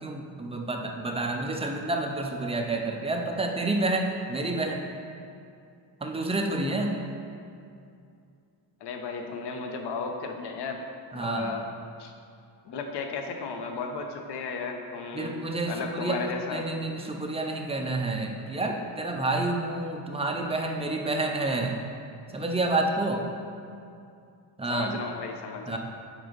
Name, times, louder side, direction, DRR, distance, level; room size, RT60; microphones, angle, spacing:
voice 1, 0.0-4.8 6.0-6.9 11.1-11.5 15.1-21.7 22.3-23.3 24.6-24.9 25.7-25.8, right 2 dB, 15° right, 2 dB, 0.3 m, -29 dB
voice 2, 8.8-10.8 11.1-11.7 12.0-12.1 12.6-15.4 15.6-16.7 24.7-25.8, left 4 dB, 65° left, 4 dB, 0.8 m, -34 dB
8.8 x 4.0 x 5.1 m, 2.5 s
cardioid pair, 180°, 44 cm